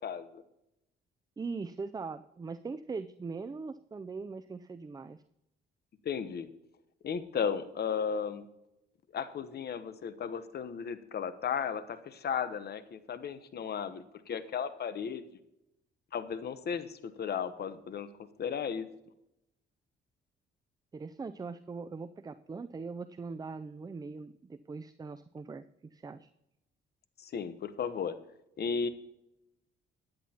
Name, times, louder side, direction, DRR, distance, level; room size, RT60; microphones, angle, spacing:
voice 1, 0.0-0.4 6.0-6.5 7.0-8.5 9.1-15.2 16.1-18.1 18.4-18.9 27.2-28.2 28.6-28.9, left 7 dB, 55° left, 12 dB, 1.0 m, -35 dB
voice 2, 1.4-5.2 20.9-26.3, right 4 dB, 20° right, 12 dB, 0.4 m, -41 dB
15.5 x 10.0 x 2.9 m, 0.85 s
cardioid pair, 90°, 20 cm